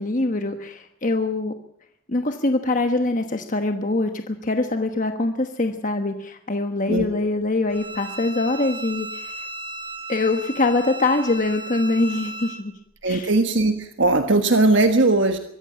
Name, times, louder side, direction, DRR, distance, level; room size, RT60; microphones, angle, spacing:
voice 1, 0.0-1.5 2.1-9.5 10.1-12.7 13.1-13.3, left 2 dB, 35° left, 6 dB, 1.2 m, -23 dB
Bowed string instrument, 7.7-12.6, right 1 dB, 25° right, 2.0 m, -35 dB
voice 2, 13.0-15.4, right 2 dB, 60° right, 6 dB, 1.4 m, -19 dB
23.5 x 14.5 x 8.6 m, 0.73 s
head